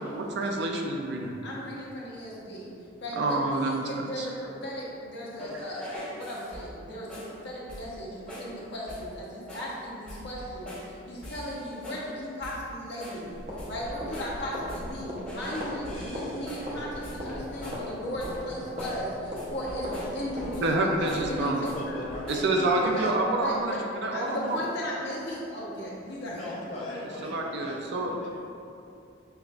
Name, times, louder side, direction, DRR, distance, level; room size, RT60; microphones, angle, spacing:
voice 1, 0.0-1.3 3.2-4.3 20.6-21.7 22.3-23.7 24.0-24.6 27.2-28.1, right 2 dB, 60° right, 1 dB, 0.4 m, -27 dB
voice 2, 1.4-2.7 3.0-22.0 22.8-23.8 24.1-27.6, equal, 55° left, -5 dB, 0.8 m, -36 dB
sound 1, 5.4-6.8 7.1-7.4 7.7-8.0 8.3-8.6 8.9-9.2 9.5-9.8 10.1-10.9 11.2-12.1 12.4-12.7 13.0-15.0 15.3-17.9 18.2-18.5 18.8-19.1 19.4-20.7 21.1-21.8 22.1-22.6, left 1 dB, 5° left, 1.2 m, -42 dB
sound 2, 13.3-23.8, equal, 35° right, 0.8 m, -39 dB
voice 3, 21.7-23.2 26.3-28.5, left 1 dB, 35° left, -7 dB, 0.4 m, -39 dB
6.6 x 2.5 x 2.3 m, 2.6 s
head